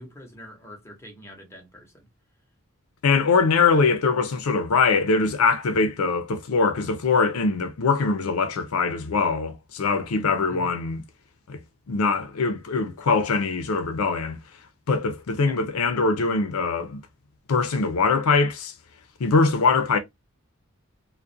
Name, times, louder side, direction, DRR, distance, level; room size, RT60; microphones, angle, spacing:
voice 1, 0.0-2.1 10.5-10.8 15.5-15.6, equal, 10° left, 0.7 m, -44 dB
voice 2, 3.0-11.0 11.5-11.6 11.9-14.4 14.9-17.0 17.5-18.7 19.2-20.0, left 4 dB, 90° left, 0.5 m, -22 dB
2.3 x 2.1 x 2.5 m
head